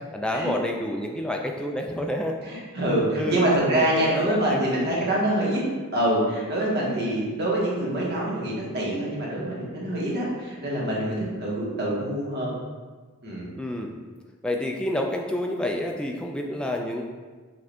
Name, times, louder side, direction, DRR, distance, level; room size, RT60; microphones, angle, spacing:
voice 1, 0.1-2.4 3.2-4.6 13.6-14.0 14.4-17.1, left 1 dB, 5° left, 1 dB, 0.3 m, -29 dB
voice 2, 2.5-5.6 5.9-12.5 13.2-13.5, right 1 dB, 50° right, -5 dB, 1.2 m, -25 dB
6.1 x 2.5 x 3.4 m, 1.4 s
head